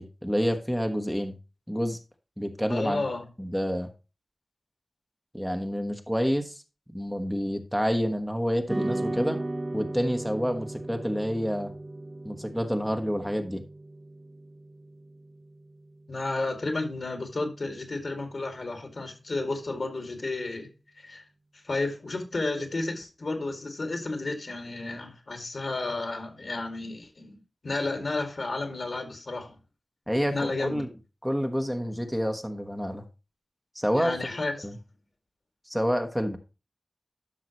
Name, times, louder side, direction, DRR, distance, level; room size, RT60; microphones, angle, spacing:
voice 1, 0.0-1.3 1.7-2.0 2.4-3.0 3.4-3.9 5.3-6.6 6.9-9.4 9.7-11.7 12.2-13.6 30.1-30.9 31.2-33.0 33.7-34.3 34.6-34.8 35.7-36.4, equal, ahead, 1.2 m, -28 dB
voice 2, 2.7-3.2 16.1-20.7 21.0-21.2 21.6-27.4 27.6-29.6 30.3-30.8 33.9-34.5, left 2 dB, 65° left, 2.3 m, -32 dB
sound 1, 8.7-17.2, right 2 dB, 35° right, 0.6 m, -37 dB
12.5 x 5.8 x 3.1 m
wide cardioid pair, 55°, 0 cm